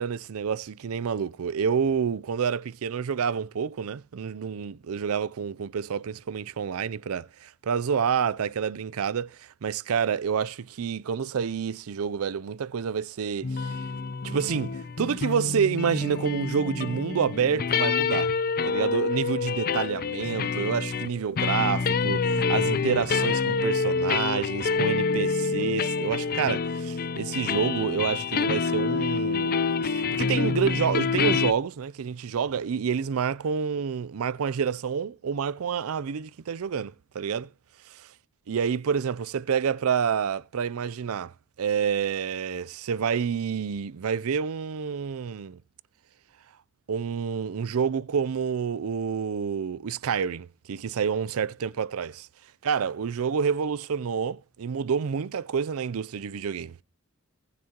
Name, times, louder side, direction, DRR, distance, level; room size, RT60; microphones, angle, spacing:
voice 1, 0.0-13.8 14.2-18.3 18.7-29.5 29.8-37.5 37.9-38.1 38.5-41.3 41.6-45.6 46.9-52.3 52.6-56.8, right 6 dB, 70° right, 0.5 m, -28 dB
sound 1, 13.4-31.5, left 5 dB, 45° left, 0.5 m, -27 dB
19.0 x 6.7 x 2.9 m
head